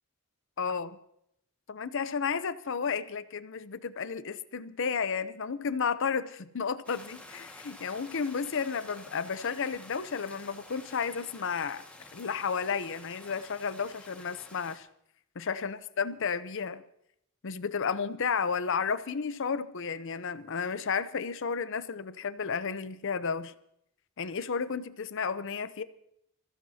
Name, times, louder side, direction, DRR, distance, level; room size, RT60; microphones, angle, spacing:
voice 1, 0.6-0.9 1.7-11.8 12.1-14.9 15.4-16.8 17.4-23.5 24.2-25.8, left 6 dB, 65° left, 13 dB, 0.7 m, -32 dB
sound 1, 6.8-14.8, left 1 dB, 5° left, 1.7 m, -50 dB
27.0 x 15.5 x 2.8 m, 0.75 s
head